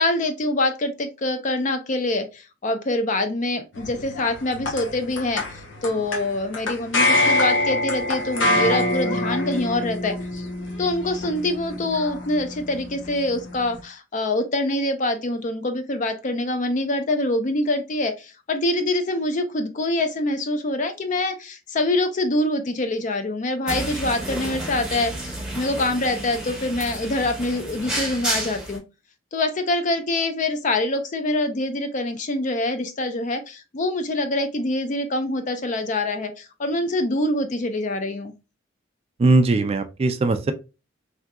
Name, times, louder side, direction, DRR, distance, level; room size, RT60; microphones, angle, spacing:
voice 1, 0.0-10.5 10.8-28.8 29.3-38.3, left 2 dB, 40° left, 0.5 m, -25 dB
sound 1, 3.7-13.8, left 1 dB, 75° left, 1.0 m, -25 dB
sound 2, 23.7-28.8, right 1 dB, 5° right, 0.8 m, -31 dB
voice 2, 39.2-40.5, right 2 dB, 30° right, 0.3 m, -19 dB
3.5 x 2.7 x 2.2 m
head